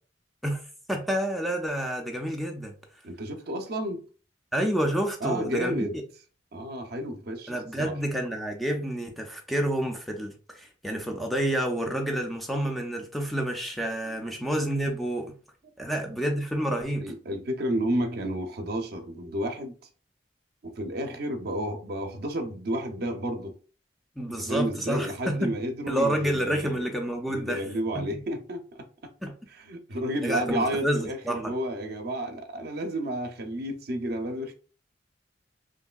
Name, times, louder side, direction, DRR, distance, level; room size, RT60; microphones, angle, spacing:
voice 1, 0.9-2.7 4.5-5.9 7.5-15.3 15.8-17.0 24.2-25.5 25.9-27.6 28.0-28.2 29.2-29.3 30.2-31.5, right 1 dB, ahead, 0.3 m, -29 dB
voice 2, 3.0-4.0 5.2-6.0 6.5-8.0 14.0-14.5 15.8-15.9 17.0-19.9 20.6-23.6 24.3-26.9 27.3-29.1 29.5-34.5, right 1 dB, 55° right, 0.5 m, -31 dB
3.0 x 2.6 x 2.3 m
head